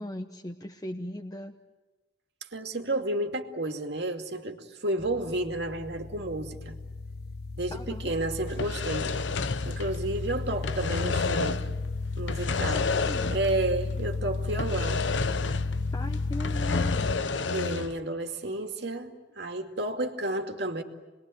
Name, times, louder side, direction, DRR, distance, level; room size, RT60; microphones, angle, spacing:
voice 1, 0.0-1.6 7.7-8.1 12.7-13.4 15.9-17.3, left 1 dB, 20° left, 0.9 m, -38 dB
voice 2, 2.5-6.8 7.6-9.2 9.6-11.8 12.2-12.9 13.3-15.1 17.5-20.8, right 1 dB, 65° right, 2.5 m, -31 dB
sound 1, 5.0-17.2, left 3 dB, 60° left, 1.1 m, -33 dB
sound 2, 8.5-10.2 10.5-11.7 12.2-13.6 13.9-14.0 14.6-15.8 16.1-18.0, left 4 dB, 85° left, 0.9 m, -30 dB
28.5 x 21.5 x 9.3 m
head